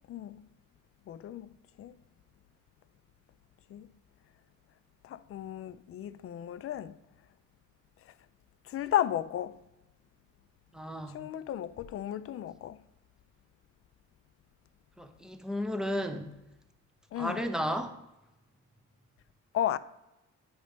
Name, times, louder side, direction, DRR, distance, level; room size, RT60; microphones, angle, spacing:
voice 1, 0.1-0.4 1.1-1.5 1.8-1.9 3.7-3.9 5.0-7.0 8.7-9.6 11.1-12.8 17.1-17.4 19.5-19.8, left 11 dB, 50° left, 0.4 m, -34 dB
voice 2, 10.7-11.2 15.0-16.3 17.2-18.0, equal, ahead, 0.8 m, -33 dB
9.0 x 3.2 x 5.2 m
cardioid pair, 90°, 30 cm